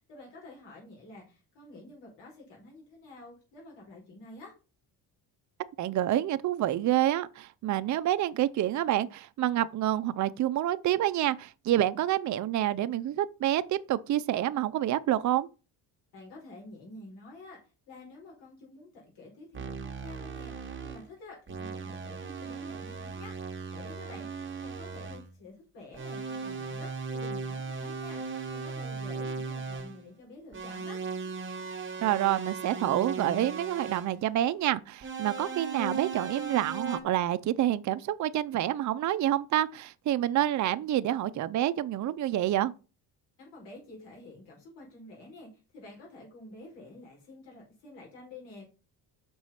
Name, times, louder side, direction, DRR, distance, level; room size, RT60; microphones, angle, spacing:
voice 1, 0.1-4.5 16.1-23.3 23.7-31.0 43.4-48.6, left 2 dB, 90° left, 4.3 m, -49 dB
voice 2, 5.8-15.5 32.0-42.7, right 13 dB, 45° right, 0.5 m, -28 dB
sound 1, 19.5-21.1 21.5-25.3 25.9-30.0 30.5-34.1 35.0-37.0, right 4 dB, 30° right, 1.2 m, -37 dB
6.1 x 4.8 x 5.6 m
cardioid pair, 115°, 41 cm